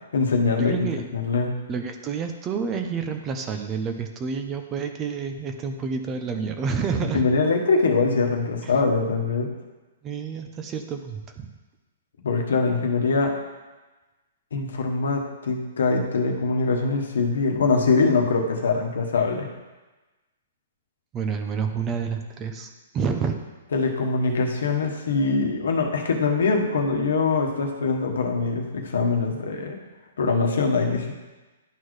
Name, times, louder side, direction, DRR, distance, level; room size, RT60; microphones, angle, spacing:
voice 1, 0.0-1.6 7.1-9.5 12.2-13.3 14.5-19.5 23.7-29.8 30.2-31.1, left 4 dB, 85° left, 2 dB, 1.2 m, -23 dB
voice 2, 0.6-1.1 1.7-7.2 8.6-8.7 10.0-11.5 21.1-23.4, right 5 dB, 20° right, 6 dB, 0.5 m, -29 dB
11.0 x 4.2 x 3.2 m, 1.2 s
hypercardioid pair, 165°, 0 cm